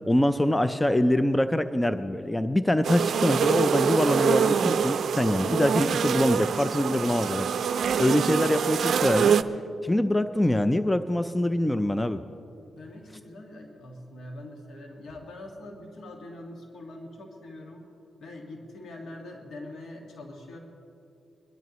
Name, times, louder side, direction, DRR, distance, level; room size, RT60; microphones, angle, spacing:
voice 1, 0.0-7.5 8.0-9.4 9.8-12.2, left 1 dB, 10° left, 10 dB, 0.4 m, -24 dB
sound 1, 2.8-9.4, right 7 dB, 65° right, 0.4 m, -25 dB
voice 2, 12.7-17.9 18.2-20.6, left 1 dB, 70° left, 1 dB, 1.8 m, -43 dB
22.5 x 12.0 x 3.1 m, 2.7 s
cardioid pair, 75°, 0 cm